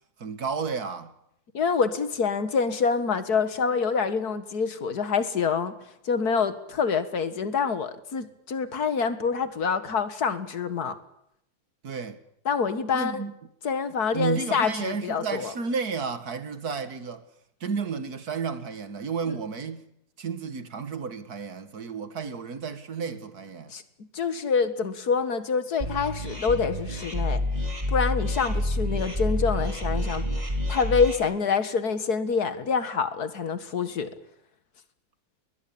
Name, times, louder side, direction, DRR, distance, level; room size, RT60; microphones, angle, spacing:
voice 1, 0.2-1.1 11.8-12.2 12.9-13.3 14.1-17.3 17.6-19.9 20.2-23.7 28.4-28.5, right 5 dB, 80° right, 2.3 m, -32 dB
voice 2, 1.5-5.7 6.0-11.0 12.5-13.2 13.6-15.5 19.3-19.4 23.7-23.8 24.1-27.4 27.9-30.2 30.7-34.1, left 5 dB, 90° left, 2.2 m, -26 dB
sound 1, 25.8-31.2, left 1 dB, 25° right, 4.6 m, -28 dB
21.5 x 21.0 x 8.7 m
omnidirectional pair, 1.6 m